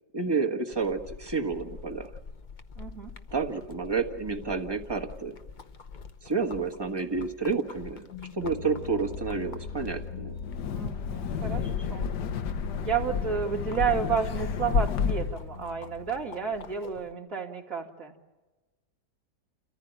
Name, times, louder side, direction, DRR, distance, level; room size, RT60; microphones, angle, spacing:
voice 1, 0.1-2.1 3.3-5.3 6.2-8.1 8.3-10.4, right 4 dB, 15° right, 4 dB, 1.5 m, -30 dB
sound 1, 0.7-17.1, left 5 dB, 35° left, 0.8 m, -44 dB
voice 2, 2.8-3.1 10.7-12.1 12.8-18.1, right 7 dB, 50° right, -5 dB, 3.0 m, -31 dB
sound 2, 7.9-16.7, left 6 dB, 55° left, 1.7 m, -42 dB
Wind, 10.4-15.5, left 6 dB, 75° left, 1.5 m, -31 dB
29.5 x 14.5 x 9.0 m, 1.2 s
omnidirectional pair, 1.8 m